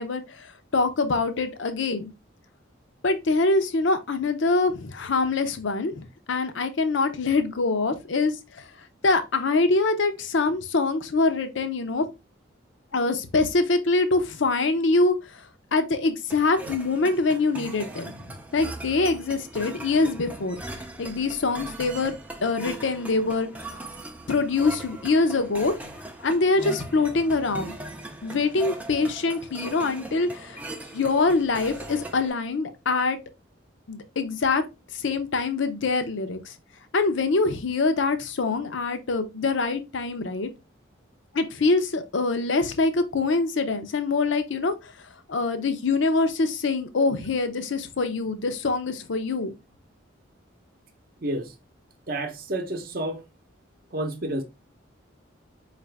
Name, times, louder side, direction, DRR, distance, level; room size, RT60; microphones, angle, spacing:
voice 1, 0.0-2.1 3.0-12.1 12.9-23.8 24.3-25.7 26.2-27.7 28.2-30.6 30.9-33.2 33.9-34.6 34.9-36.5 36.9-40.5 41.3-49.5, left 3 dB, 75° left, 0.6 m, -24 dB
sound 1, 16.3-32.3, right 2 dB, 10° right, 0.4 m, -39 dB
voice 2, 51.2-51.5 52.1-53.2 53.9-54.4, right 1 dB, 45° right, 0.7 m, -30 dB
4.8 x 2.5 x 3.2 m
head